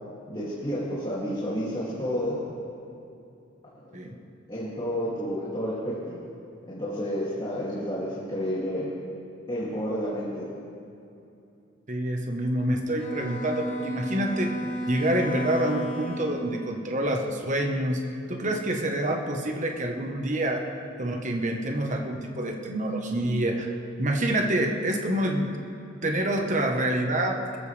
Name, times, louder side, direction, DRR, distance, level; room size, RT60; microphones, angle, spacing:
voice 1, 0.3-2.4 3.7-4.1 4.5-6.2 6.7-8.9 9.5-10.5, equal, 25° left, -9 dB, 2.7 m, -30 dB
voice 2, 11.9-14.6 14.9-18.0 18.3-20.6 21.0-23.7 24.0-25.5 26.0-27.6, right 1 dB, 40° right, 3 dB, 1.3 m, -27 dB
Bowed string instrument, 13.0-16.6, right 1 dB, 5° left, 3.2 m, -33 dB
25.5 x 14.5 x 3.4 m, 2.6 s
head